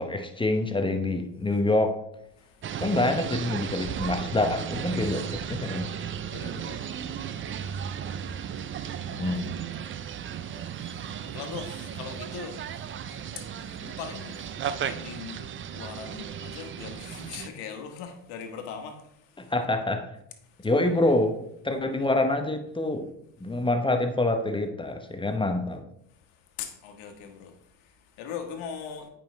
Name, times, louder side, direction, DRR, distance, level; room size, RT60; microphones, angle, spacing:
voice 1, 0.0-2.0 2.8-5.9 9.2-9.5 19.4-20.1 20.6-21.4 21.6-23.1 23.4-25.8, left 2 dB, 10° left, 6 dB, 0.8 m, -26 dB
voice 2, 2.4-2.8 6.1-9.4 9.8-19.5 20.4-21.1 23.4-23.6 26.3-29.1, left 7 dB, 80° left, 6 dB, 1.4 m, -42 dB
sound 1, 2.6-17.5, right 8 dB, 30° right, 0.4 m, -35 dB
8.9 x 5.3 x 3.2 m, 0.77 s
supercardioid pair, 85°, 48 cm